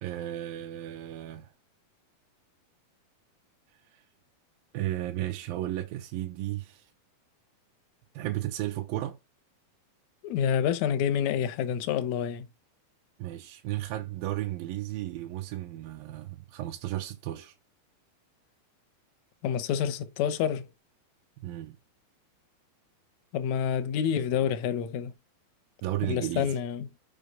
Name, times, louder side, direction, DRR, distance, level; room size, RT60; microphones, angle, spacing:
voice 1, 0.0-1.5 4.7-6.8 8.1-9.2 13.2-17.5 21.4-21.8 25.8-26.5, right 14 dB, 75° right, 2.7 m, -34 dB
voice 2, 10.2-12.5 19.4-20.7 23.3-25.1 26.1-26.9, left 8 dB, 70° left, 1.7 m, -28 dB
6.3 x 5.3 x 5.3 m
omnidirectional pair, 4.3 m